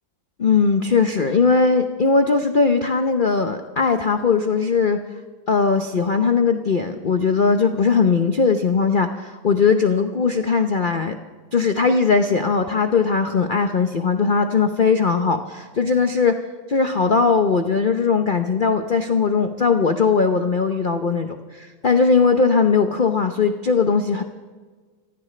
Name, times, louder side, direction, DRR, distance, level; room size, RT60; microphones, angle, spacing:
voice 1, 0.4-5.0 5.5-11.2 11.5-16.3 16.7-24.2, left 5 dB, 75° left, 6 dB, 0.4 m, -19 dB
26.0 x 15.0 x 3.3 m, 1.4 s
omnidirectional pair, 2.1 m